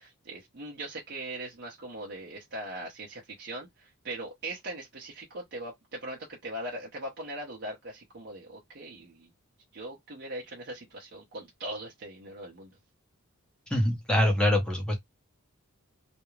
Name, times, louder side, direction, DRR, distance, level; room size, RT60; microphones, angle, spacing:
voice 1, 0.0-9.3 9.7-12.7, right 1 dB, 50° right, 0.7 m, -40 dB
voice 2, 13.7-15.0, left 1 dB, 5° left, 0.8 m, -24 dB
2.4 x 2.1 x 3.0 m
head